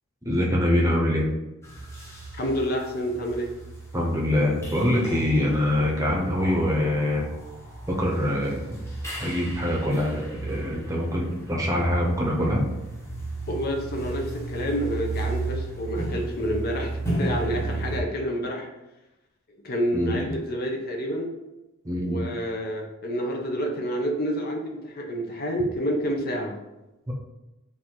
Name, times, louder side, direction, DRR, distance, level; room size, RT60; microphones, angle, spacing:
voice 1, 0.3-1.3 3.9-7.3 7.9-8.8 9.2-12.7 19.9-20.3 21.8-22.2 27.1-27.2, left 1 dB, 15° right, -2 dB, 0.8 m, -24 dB
sound 1, 1.6-18.0, right 2 dB, 15° left, 0.9 m, -34 dB
voice 2, 2.4-3.5 13.5-16.9 17.2-18.7 19.6-21.3 22.0-26.6, equal, 45° left, 1 dB, 0.7 m, -28 dB
4.1 x 2.6 x 4.4 m, 0.98 s
head